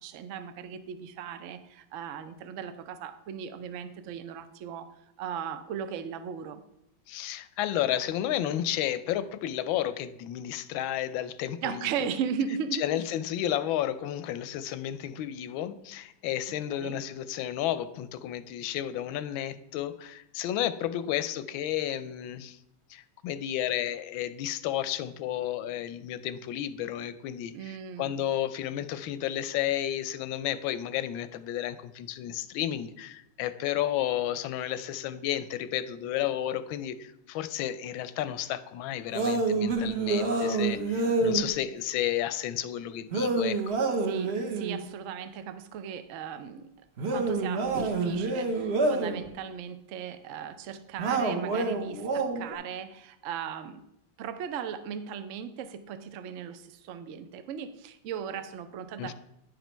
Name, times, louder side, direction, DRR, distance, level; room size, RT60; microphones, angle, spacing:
voice 1, 0.0-6.6 11.6-13.1 16.5-17.0 27.5-28.2 44.0-46.7 47.1-53.8 54.2-59.1, right 7 dB, 85° right, 10 dB, 0.6 m, -37 dB
voice 2, 7.1-12.1 12.8-22.6 22.9-27.5 28.0-43.8 59.0-59.1, left 11 dB, 85° left, 13 dB, 1.3 m, -32 dB
sound 1, 39.1-41.5 43.1-44.8 47.0-49.2 51.0-52.5, right 3 dB, 45° right, 0.9 m, -27 dB
10.5 x 5.2 x 4.4 m, 0.82 s
omnidirectional pair, 2.1 m